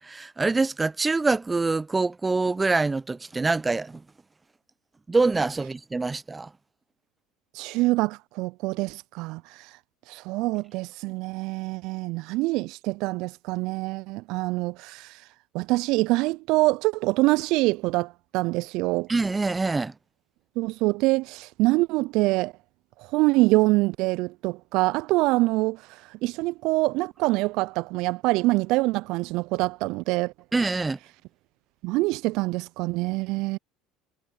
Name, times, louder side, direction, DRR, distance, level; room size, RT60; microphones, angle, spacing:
voice 1, 0.0-4.0 5.1-6.5 19.1-19.9 30.5-31.0, right 3 dB, 20° right, 0.6 m, -25 dB
voice 2, 7.5-9.8 10.1-15.2 15.5-19.1 20.6-22.5 23.0-30.3 31.8-33.6, right 22 dB, 65° right, 0.3 m, -25 dB
hypercardioid pair, 75°, 0 cm